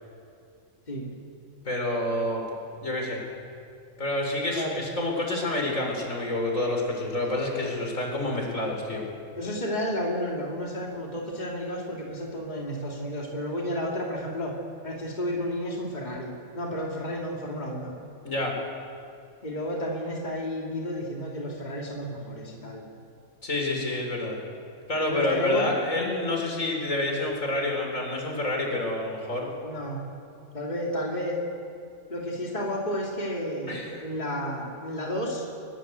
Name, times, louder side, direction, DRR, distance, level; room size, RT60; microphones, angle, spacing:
voice 1, 1.6-2.4 2.8-3.2 4.0-9.0 18.2-18.6 23.4-24.4 24.9-29.5 33.7-34.0, left 1 dB, 80° left, 1 dB, 5.0 m, -28 dB
voice 2, 4.5-4.8 9.3-14.5 14.8-17.9 19.4-22.8 25.0-25.8 29.6-30.0 30.5-31.4 32.1-35.5, equal, 35° left, -2 dB, 2.9 m, -32 dB
23.0 x 21.0 x 8.2 m, 2.5 s
omnidirectional pair, 1.3 m